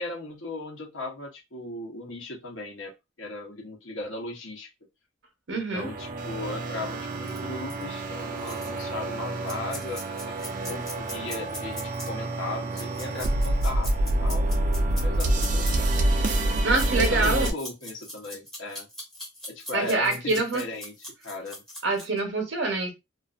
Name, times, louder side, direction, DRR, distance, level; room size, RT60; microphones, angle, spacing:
voice 1, 0.0-2.9 3.2-4.7 5.5-10.4 10.7-16.0 16.9-18.9 19.5-21.6, left 2 dB, 85° left, 0.9 m, -37 dB
voice 2, 5.5-5.9 16.6-17.5 19.7-20.6 21.8-22.9, right 3 dB, 65° right, 0.8 m, -25 dB
sound 1, 5.7-17.5, right 1 dB, 40° right, 0.3 m, -27 dB
sound 2, 7.2-7.4 7.7-7.8 8.2-8.8 9.5-12.1 12.7-15.7 16.6-22.2, equal, ahead, 0.6 m, -40 dB
2.4 x 2.4 x 2.4 m
head